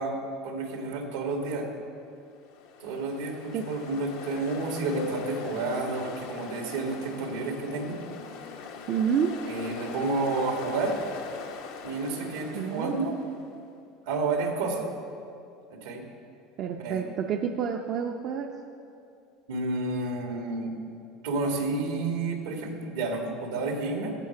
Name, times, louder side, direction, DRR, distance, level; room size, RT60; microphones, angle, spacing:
voice 1, 0.0-1.7 2.8-8.0 9.4-11.0 11.8-13.2 14.1-14.9 15.7-16.0 16.8-17.0 19.5-20.7 21.2-24.1, right 3 dB, 90° right, 2 dB, 1.8 m, -30 dB
Ocean, 2.4-13.4, left 5 dB, 85° left, 1.1 m, -41 dB
voice 2, 8.9-9.3 12.5-13.0 16.6-18.5, right 7 dB, 50° right, 4 dB, 0.6 m, -28 dB
15.0 x 5.6 x 5.9 m, 2.5 s
supercardioid pair, 105°, 0 cm